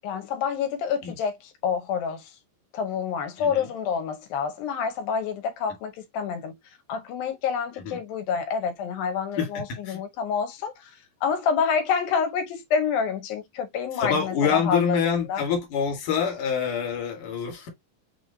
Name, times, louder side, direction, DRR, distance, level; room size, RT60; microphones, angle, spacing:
voice 1, 0.0-2.4 2.7-6.5 6.9-15.4, left 6 dB, 80° left, 2.7 m, -28 dB
voice 2, 9.4-10.0 14.0-17.7, left 7 dB, 65° left, 3.0 m, -26 dB
6.3 x 3.0 x 2.7 m
omnidirectional pair, 4.1 m